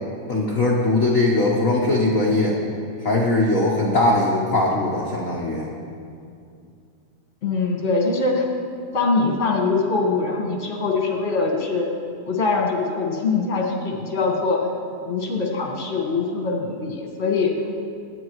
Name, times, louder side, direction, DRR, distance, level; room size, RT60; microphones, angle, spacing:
voice 1, 0.3-2.6 3.0-5.7, left 2 dB, 80° left, -3 dB, 0.7 m, -20 dB
voice 2, 7.4-8.6 8.9-11.9 12.3-14.6 15.0-17.5, left 4 dB, 30° left, 0 dB, 1.4 m, -23 dB
25.0 x 9.7 x 3.1 m, 2.4 s
omnidirectional pair, 3.4 m